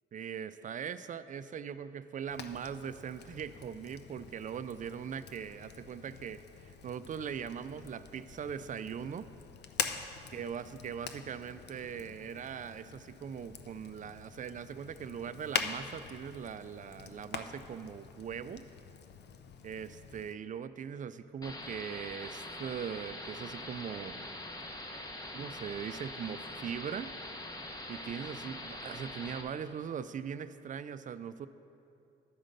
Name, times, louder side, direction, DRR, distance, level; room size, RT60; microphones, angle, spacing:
voice 1, 0.1-9.3 10.3-18.6 19.6-24.4 25.3-27.1 27.9-31.5, right 7 dB, 40° right, 13 dB, 0.4 m, -41 dB
Fire, 2.3-20.3, left 7 dB, 60° left, 0.6 m, -44 dB
sound 1, 21.4-29.4, left 1 dB, 20° left, 0.9 m, -43 dB
11.0 x 5.1 x 6.5 m, 2.7 s
cardioid pair, 90°, 20 cm